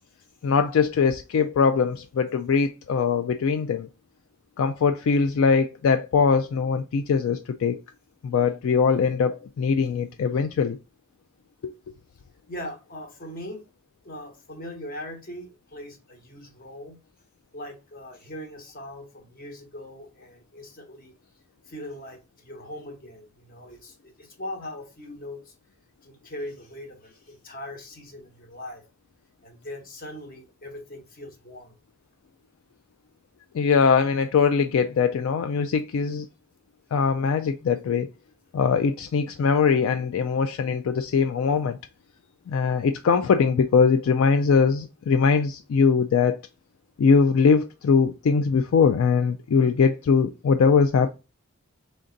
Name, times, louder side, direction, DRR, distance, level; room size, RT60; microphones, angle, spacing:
voice 1, 0.4-3.9 4.6-7.8 8.2-10.8 11.6-11.7 33.5-36.3 36.9-38.1 38.5-41.8 42.5-46.4 47.0-51.1, left 5 dB, 70° left, 0.3 m, -21 dB
voice 2, 12.5-13.6 14.0-17.0 17.5-21.1 21.7-25.5 26.0-28.8 29.4-31.8, left 1 dB, 40° left, 1.0 m, -40 dB
3.8 x 3.4 x 3.9 m
head